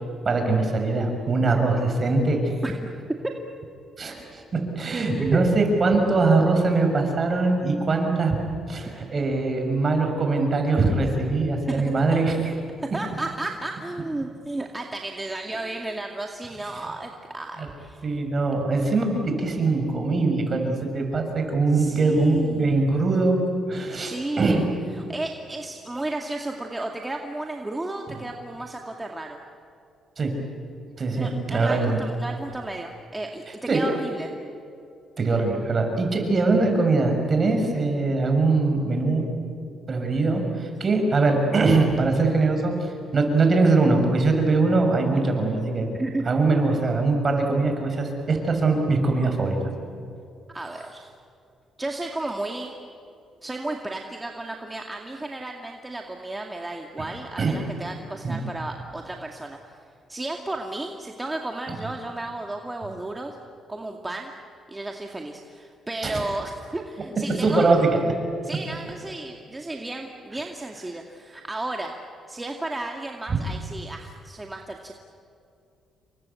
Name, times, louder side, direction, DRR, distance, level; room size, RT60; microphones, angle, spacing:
voice 1, 0.2-2.5 4.0-8.4 8.7-12.4 17.6-17.7 18.0-23.4 23.7-24.6 30.2-30.3 31.0-32.0 33.7-33.8 35.2-39.3 39.9-45.9 46.3-49.6 57.4-57.6 58.2-58.4 66.0-66.2 67.4-67.9 73.3-73.4, right 3 dB, 40° right, 4 dB, 6.5 m, -22 dB
voice 2, 11.7-12.2 12.8-18.2 21.7-22.8 23.9-24.6 24.9-29.4 31.1-34.3 45.9-46.2 50.5-51.1 51.8-52.7 53.4-59.8 60.1-63.4 63.7-64.3 64.7-67.7 68.4-71.9 72.3-74.9, right 2 dB, 15° right, 2 dB, 2.3 m, -33 dB
29.0 x 23.5 x 8.5 m, 2.5 s
cardioid pair, 90°, 0 cm